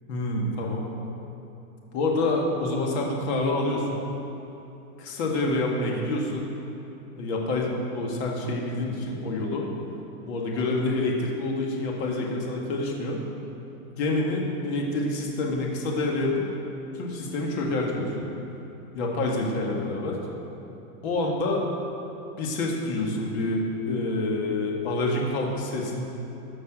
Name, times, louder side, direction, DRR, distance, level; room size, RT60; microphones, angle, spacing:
voice 1, 0.1-0.9 1.9-4.0 5.0-6.5 7.1-9.7 10.3-13.2 14.0-16.5 16.9-18.3 18.9-20.2 21.0-21.6 22.4-26.0, left 2 dB, 45° left, -1 dB, 1.8 m, -27 dB
13.5 x 6.0 x 6.1 m, 3.0 s
supercardioid pair, 170°, 45 cm